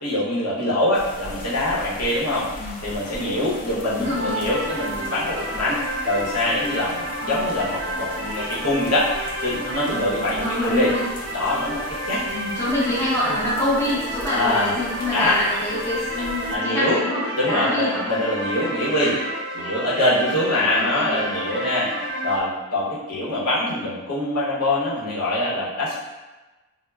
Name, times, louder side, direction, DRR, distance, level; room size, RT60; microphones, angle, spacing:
voice 1, 0.0-2.5 2.8-9.1 9.4-10.9 11.3-12.2 14.3-14.8 15.1-15.3 16.5-17.0 17.4-19.2 19.5-21.9 22.2-25.9, left 1 dB, 85° left, -7 dB, 0.8 m, -24 dB
sound 1, 0.9-16.6, left 1 dB, 35° left, 0.3 m, -39 dB
voice 2, 3.9-4.4 10.4-11.0 12.3-18.1 19.0-19.2 20.7-21.3, left 1 dB, 10° left, -10 dB, 0.7 m, -26 dB
sound 2, 4.0-22.4, right 1 dB, 45° right, 0.6 m, -30 dB
2.1 x 2.0 x 3.3 m, 1.1 s
head